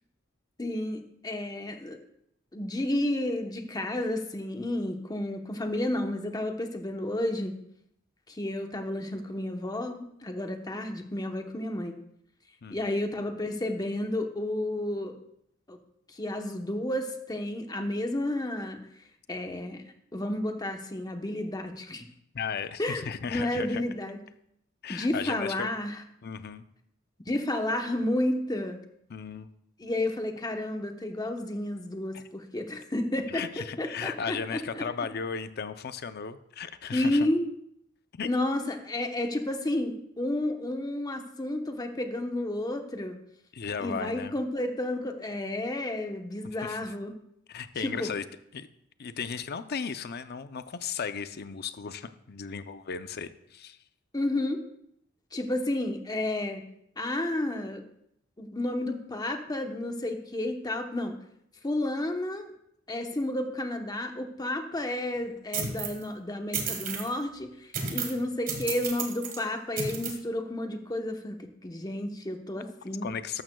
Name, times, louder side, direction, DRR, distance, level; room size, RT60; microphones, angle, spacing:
voice 1, 0.6-2.0 2.5-7.5 8.3-11.9 12.7-15.1 15.7-15.8 16.1-18.8 19.3-19.8 20.1-22.0 22.8-24.2 24.9-26.0 27.3-28.8 29.8-34.8 36.9-37.5 38.2-43.2 43.8-47.1 47.8-48.1 54.1-54.6 55.3-56.6 57.0-57.8 58.4-61.2 61.6-62.5 62.9-73.1, left 1 dB, 20° left, 5 dB, 0.9 m, -31 dB
voice 2, 22.3-23.8 24.8-25.7 26.2-26.6 29.1-29.5 32.1-32.2 33.3-37.3 38.1-38.3 43.5-44.3 46.4-46.8 47.5-48.2 48.5-48.7 49.0-53.8 73.0-73.4, left 6 dB, 55° left, 11 dB, 0.6 m, -35 dB
sound 1, 65.5-66.0 66.5-67.1 67.7-68.2 68.5-69.4 69.8-70.1, right 5 dB, 45° right, 1.6 m, -33 dB
13.0 x 12.5 x 2.3 m, 0.74 s
head